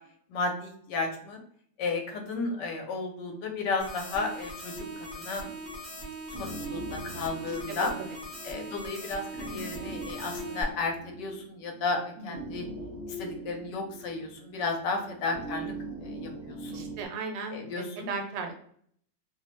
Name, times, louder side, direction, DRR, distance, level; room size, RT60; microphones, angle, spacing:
voice 1, 0.3-1.4 1.8-4.7 5.1-5.5 6.4-7.9 8.4-12.7 13.1-15.7 16.0-16.9 17.5-18.1, left 3 dB, 75° left, 4 dB, 1.1 m, -33 dB
sound 1, 3.8-10.6, right 1 dB, ahead, 0.7 m, -41 dB
sound 2, 4.7-17.0, right 1 dB, 60° right, 0.7 m, -42 dB
voice 2, 16.7-18.5, right 4 dB, 80° right, 4 dB, 1.2 m, -36 dB
2.9 x 2.0 x 2.9 m, 0.62 s
omnidirectional pair, 2.0 m